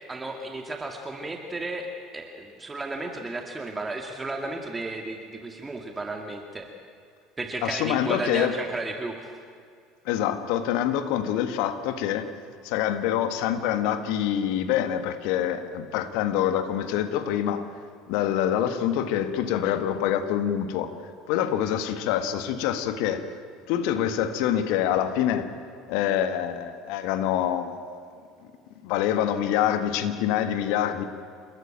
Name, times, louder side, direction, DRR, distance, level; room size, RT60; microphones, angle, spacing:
voice 1, 0.0-6.7 7.4-9.4, right 2 dB, 20° right, 3 dB, 2.2 m, -34 dB
voice 2, 7.6-8.6 10.1-12.3 12.6-17.7 18.1-20.9 21.3-23.3 23.7-25.5 25.9-27.7 28.8-31.0, left 10 dB, 65° left, 10 dB, 1.7 m, -26 dB
29.0 x 14.0 x 8.9 m, 2.3 s
hypercardioid pair, 70°, 0 cm